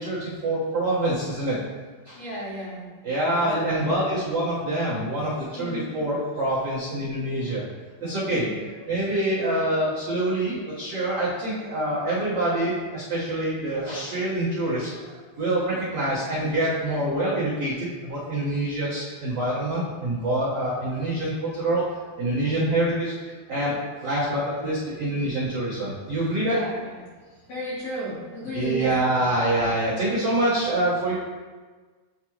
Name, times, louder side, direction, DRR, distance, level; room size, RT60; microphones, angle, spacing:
voice 1, 0.0-1.6 2.0-2.2 3.0-7.6 8.0-8.5 8.9-21.8 22.2-26.5 28.5-31.1, right 1 dB, 80° right, -11 dB, 1.4 m, -26 dB
voice 2, 2.2-2.8 3.4-4.2 5.5-6.0 8.3-8.8 26.4-27.0 27.5-29.0, equal, 50° left, -11 dB, 2.3 m, -35 dB
10.5 x 3.8 x 3.1 m, 1.4 s
omnidirectional pair, 5.4 m